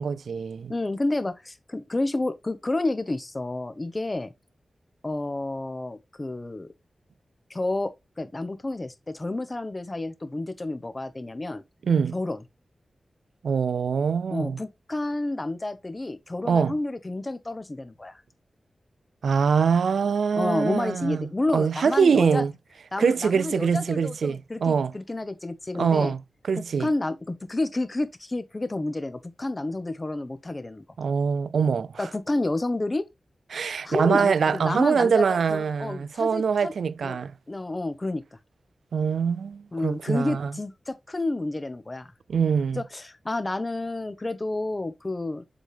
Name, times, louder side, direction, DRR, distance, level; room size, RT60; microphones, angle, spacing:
voice 1, 0.0-0.7 11.8-12.1 13.4-14.6 16.4-16.8 19.2-22.5 23.0-24.9 25.8-26.2 26.5-26.9 31.0-32.1 33.5-37.3 38.9-40.5 42.3-42.8, right 6 dB, 85° right, 0.3 m, -24 dB
voice 2, 0.7-4.3 5.0-6.7 7.5-11.6 12.1-12.4 14.3-18.2 20.3-22.4 22.9-26.1 26.8-30.8 32.0-33.0 33.8-36.7 37.0-37.2 37.5-38.2 39.7-42.1 42.7-45.4, left 2 dB, 30° left, 1.2 m, -30 dB
7.4 x 5.0 x 3.4 m
cardioid pair, 60°, 0 cm